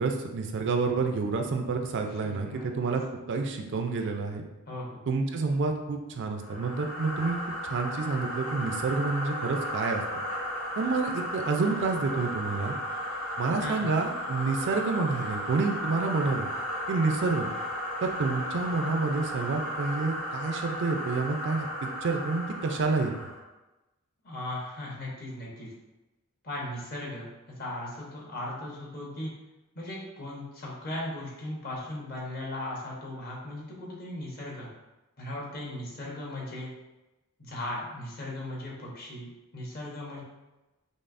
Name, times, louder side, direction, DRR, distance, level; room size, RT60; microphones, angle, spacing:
voice 1, 0.0-3.0 3.3-4.4 5.1-7.4 7.6-10.0 10.8-12.7 13.4-16.5 16.9-17.5 18.0-23.1, right 4 dB, 55° right, 4 dB, 0.4 m, -28 dB
voice 2, 2.0-2.9 4.7-5.0 13.6-14.0 24.2-25.7 26.4-27.3 27.6-29.3 29.7-34.7 35.2-36.7 37.4-40.2, left 1 dB, 45° left, -4 dB, 1.0 m, -37 dB
sound 1, 6.4-23.4, equal, 75° left, 0.9 m, -35 dB
5.3 x 2.0 x 2.5 m, 1.0 s
head